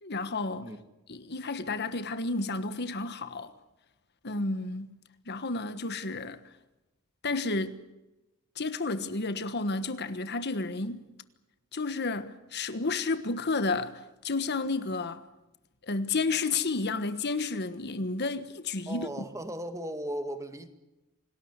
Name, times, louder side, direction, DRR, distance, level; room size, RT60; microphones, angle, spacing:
voice 1, 0.0-0.7 1.1-3.5 4.2-4.9 5.3-6.4 7.2-7.8 8.6-11.1 11.7-15.2 15.9-19.1, left 3 dB, 50° left, 1.3 m, -31 dB
voice 2, 18.9-20.7, right 1 dB, 15° right, 2.0 m, -36 dB
28.0 x 19.0 x 8.2 m
head